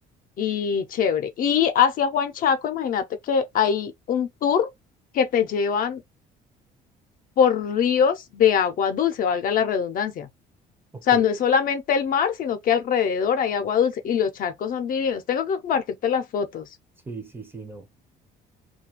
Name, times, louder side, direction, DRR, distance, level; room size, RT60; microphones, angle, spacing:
voice 1, 0.4-4.7 5.1-6.0 7.4-10.3 11.0-16.7, left 7 dB, 55° left, 0.6 m, -23 dB
voice 2, 10.9-11.3 17.1-17.9, right 4 dB, 10° right, 0.6 m, -38 dB
2.3 x 2.3 x 2.8 m
cardioid pair, 110°, 17 cm